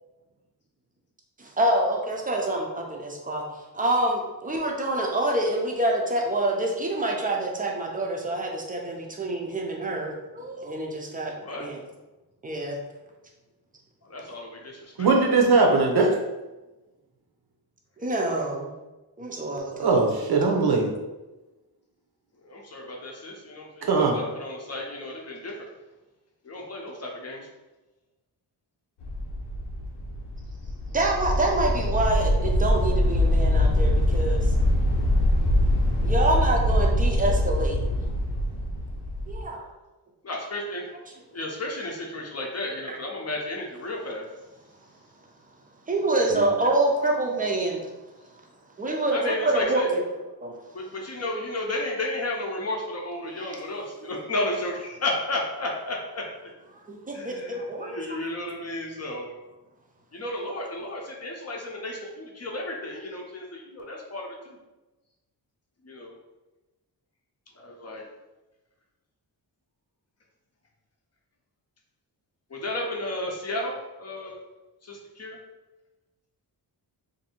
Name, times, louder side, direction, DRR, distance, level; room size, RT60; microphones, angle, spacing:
voice 1, 1.6-3.4 3.7-11.3 11.6-11.8 12.4-12.8 18.0-18.7 19.2-19.9 30.9-34.5 36.0-37.9 39.3-39.6 42.9-43.0 45.9-47.9 48.8-50.0 50.4-50.5 53.4-53.5 56.7-58.2, right 2 dB, 20° right, 0 dB, 0.5 m, -26 dB
voice 2, 11.3-11.7 14.0-15.1 22.4-25.5 26.4-27.5 40.2-40.9 41.3-44.2 49.1-49.9 50.7-56.2 56.9-59.3 60.1-64.6 65.8-66.1 67.6-68.0 72.5-74.4 74.8-75.4, left 1 dB, 40° left, -1 dB, 0.6 m, -33 dB
voice 3, 15.0-16.2 19.7-20.9 23.9-24.2 46.3-46.5, right 3 dB, 65° right, 1 dB, 0.7 m, -20 dB
sound 1, 29.0-39.4, left 1 dB, 85° left, 0.7 m, -23 dB
2.7 x 2.6 x 4.2 m, 1.1 s
wide cardioid pair, 175°, 41 cm